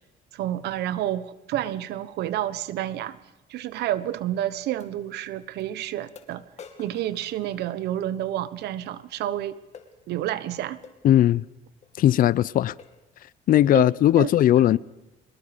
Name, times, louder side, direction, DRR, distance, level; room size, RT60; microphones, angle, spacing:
voice 1, 0.3-3.2 3.5-6.4 6.8-9.6 10.1-10.8 13.7-13.9 14.2-14.3 14.6-14.8, right 12 dB, 75° right, 1.1 m, -29 dB
sound 1, 3.8-3.9 4.8-4.9 5.6-5.7 6.2-8.1 9.7-10.0 10.8-11.0 11.8-12.0 12.4-12.5 12.8-13.1 13.6-13.9, left 6 dB, 40° left, 2.5 m, -49 dB
voice 2, 11.0-11.5 12.0-12.7 13.5-14.8, left 12 dB, 55° left, 0.6 m, -18 dB
23.5 x 21.0 x 5.2 m
cardioid pair, 110°, 17 cm